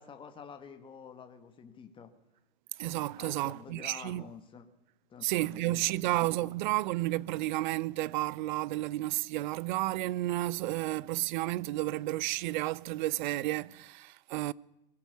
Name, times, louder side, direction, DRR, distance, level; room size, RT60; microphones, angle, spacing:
voice 1, 0.0-2.1 3.2-4.7 5.1-6.1 6.4-6.5, left 6 dB, 15° left, 1.9 m, -48 dB
voice 2, 2.8-4.3 5.2-14.5, right 17 dB, 50° right, 0.7 m, -32 dB
23.5 x 16.5 x 7.0 m
hypercardioid pair, 130°, 30 cm